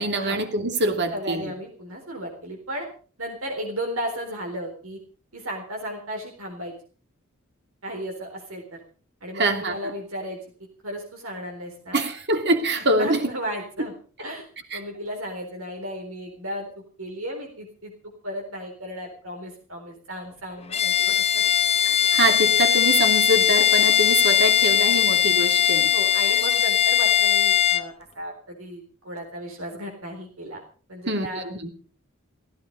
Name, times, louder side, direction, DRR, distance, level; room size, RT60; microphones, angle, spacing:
voice 1, 0.0-1.5 9.3-9.9 11.9-13.3 14.7-14.8 21.8-25.9 26.2-26.3 31.1-31.7, right 1 dB, 55° right, 7 dB, 2.8 m, -25 dB
voice 2, 1.1-2.9 3.2-5.0 5.3-6.7 7.8-8.8 9.2-10.4 10.8-12.0 12.7-13.9 14.2-14.5 14.7-16.7 17.0-17.9 18.2-21.4 25.9-30.6 30.9-31.5, equal, 80° right, 1 dB, 4.1 m, -34 dB
Bowed string instrument, 20.7-27.9, left 10 dB, 30° left, 0.8 m, -20 dB
16.5 x 15.5 x 5.4 m, 0.42 s
head